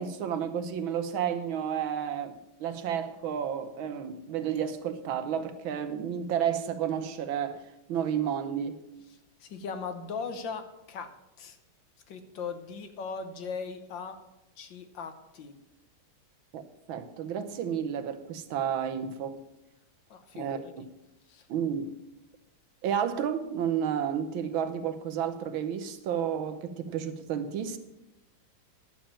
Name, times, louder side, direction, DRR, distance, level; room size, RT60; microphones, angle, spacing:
voice 1, 0.0-8.8 16.5-16.6 16.9-19.4 20.3-20.6 21.5-21.9 22.8-27.8, right 8 dB, 80° right, 1.7 m, -31 dB
voice 2, 9.4-11.1 11.4-11.6 12.1-14.2 14.6-15.5 20.1-20.7 21.3-21.5, left 5 dB, 70° left, 1.7 m, -38 dB
10.0 x 7.1 x 7.4 m
omnidirectional pair, 2.2 m